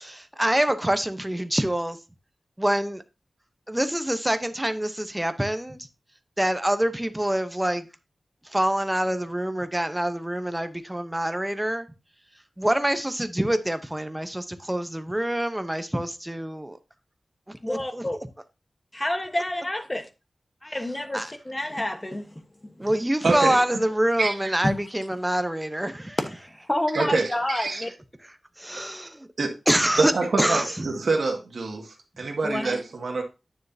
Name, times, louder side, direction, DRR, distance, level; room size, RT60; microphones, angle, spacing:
voice 1, 0.0-2.0 2.6-3.0 3.7-5.9 6.4-7.9 8.4-11.9 12.6-16.8 17.5-18.0 21.1-21.3 22.8-26.2 28.6-29.3 29.7-30.1 30.4-30.9, right 1 dB, 10° right, 0.9 m, -26 dB
voice 2, 17.6-18.2 18.9-20.1 20.6-22.3 22.6-22.9 24.6-24.8 26.2-26.3 26.7-27.9 32.4-32.8, left 1 dB, 20° left, 1.2 m, -29 dB
voice 3, 23.2-23.6 24.2-24.5 26.9-27.8 29.4-29.5 30.0-33.2, right 3 dB, 85° right, 1.9 m, -26 dB
9.6 x 6.5 x 2.8 m
wide cardioid pair, 85°, 0 cm